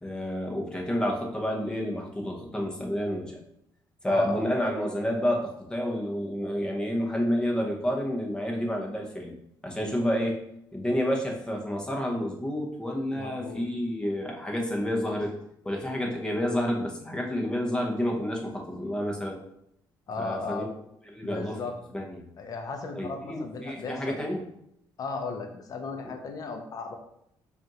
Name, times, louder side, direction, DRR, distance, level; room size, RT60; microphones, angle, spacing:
voice 1, 0.0-3.4 4.0-9.3 9.6-10.4 10.7-15.4 15.6-19.4 20.2-20.7 21.1-21.6 21.9-22.3 22.9-24.4 26.0-26.1, equal, 10° left, 0 dB, 0.9 m, -29 dB
voice 2, 4.1-4.5 13.1-13.6 20.1-20.7 21.2-21.7 22.4-24.2 25.0-26.9, left 4 dB, 50° left, 4 dB, 0.7 m, -35 dB
5.0 x 2.5 x 3.0 m, 0.76 s
cardioid pair, 95°, 8 cm